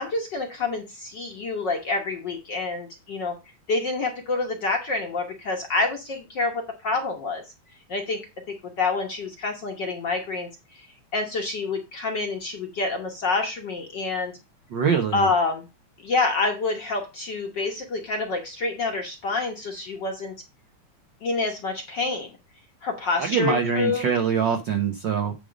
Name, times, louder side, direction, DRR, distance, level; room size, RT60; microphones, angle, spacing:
voice 1, 0.0-3.4 3.7-7.4 7.9-8.2 8.5-10.5 11.1-14.3 15.1-15.7 16.0-20.3 21.2-22.3 22.8-24.0, left 3 dB, 50° left, 1.4 m, -27 dB
voice 2, 14.7-15.3 23.2-25.3, right 6 dB, 75° right, 1.0 m, -23 dB
10.0 x 3.8 x 5.1 m
omnidirectional pair, 3.4 m